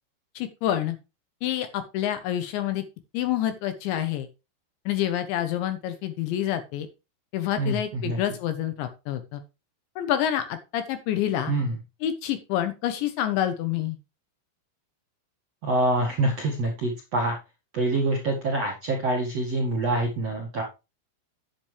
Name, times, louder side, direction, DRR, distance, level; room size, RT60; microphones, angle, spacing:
voice 1, 0.4-1.0 1.4-2.8 3.1-4.3 4.9-6.9 7.3-9.4 10.0-11.5 12.0-14.0, left 11 dB, 75° left, 9 dB, 3.0 m, -27 dB
voice 2, 7.6-8.2 11.5-11.7 15.6-17.4 17.7-20.6, right 2 dB, 55° right, -1 dB, 1.8 m, -26 dB
10.5 x 8.7 x 3.4 m, 0.27 s
omnidirectional pair, 5.9 m